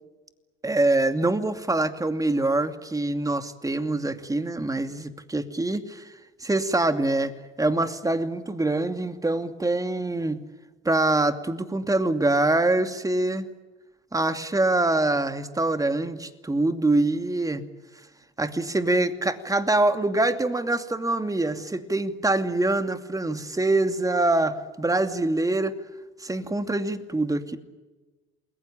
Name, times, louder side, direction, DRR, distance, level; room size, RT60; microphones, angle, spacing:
voice 1, 0.6-6.1 6.4-10.4 10.8-13.5 14.1-17.6 18.4-25.7 26.2-27.6, right 2 dB, 10° right, 8 dB, 2.6 m, -24 dB
28.5 x 21.5 x 8.9 m, 1.2 s
hypercardioid pair, 70°, 30 cm